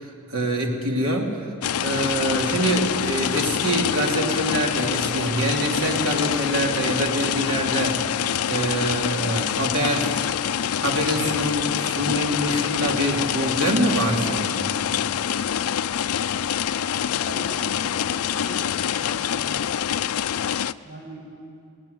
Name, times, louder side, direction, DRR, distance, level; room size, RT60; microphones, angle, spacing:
voice 1, 0.0-1.4 1.8-8.0 8.5-10.3 10.8-14.7, right 1 dB, 80° right, 0 dB, 3.1 m, -25 dB
sound 1, 1.6-20.7, left 9 dB, 85° left, 0.4 m, -26 dB
voice 2, 17.1-19.5 20.8-21.3, equal, 45° right, -4 dB, 7.9 m, -40 dB
19.5 x 18.0 x 9.7 m, 2.4 s
head